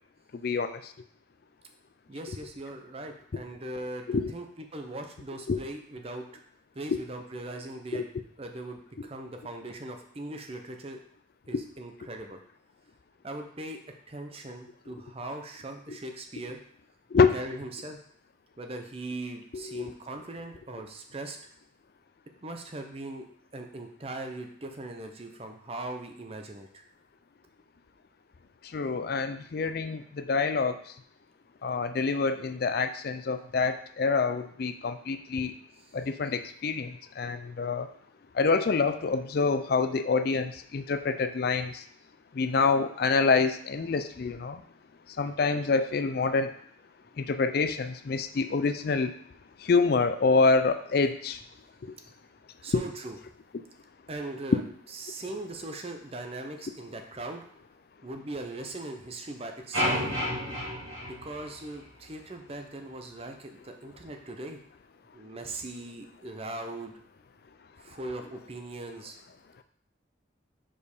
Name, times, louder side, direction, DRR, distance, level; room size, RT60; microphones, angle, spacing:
voice 1, 0.4-0.8 2.3-2.4 4.1-4.3 5.5-5.6 6.9-7.0 7.9-8.0 11.5-11.6 17.1-17.3 19.5-19.8 28.7-30.8 31.6-35.5 35.9-37.9 38.3-41.8 42.3-44.6 45.2-46.5 47.2-49.1 49.6-51.4 52.7-52.8, left 4 dB, 50° left, 9 dB, 0.4 m, -26 dB
voice 2, 2.1-4.1 4.3-6.2 6.7-8.1 8.4-11.0 11.5-12.4 13.2-13.8 14.1-16.6 17.3-18.0 18.6-21.4 22.4-23.2 23.5-26.8 35.8-35.9 52.6-53.2 54.1-57.4 58.0-60.2 61.0-64.6 65.1-66.9 67.8-69.2, right 2 dB, 30° right, 5 dB, 0.7 m, -40 dB
sound 1, 59.7-62.0, equal, 85° right, 2.2 m, -31 dB
5.0 x 4.4 x 5.3 m, 0.62 s
head